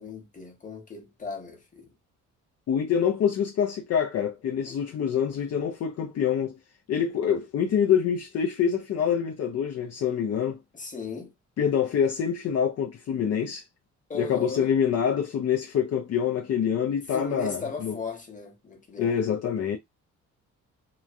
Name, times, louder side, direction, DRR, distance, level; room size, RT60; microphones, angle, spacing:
voice 1, 0.0-1.9 4.6-4.8 10.7-11.3 14.1-14.7 17.1-19.3, left 4 dB, 25° left, 1.1 m, -37 dB
voice 2, 2.7-6.6 6.9-10.6 11.6-13.6 14.1-17.9 19.0-19.8, left 8 dB, 55° left, 0.6 m, -26 dB
3.0 x 2.3 x 2.5 m
cardioid pair, 90°, 30 cm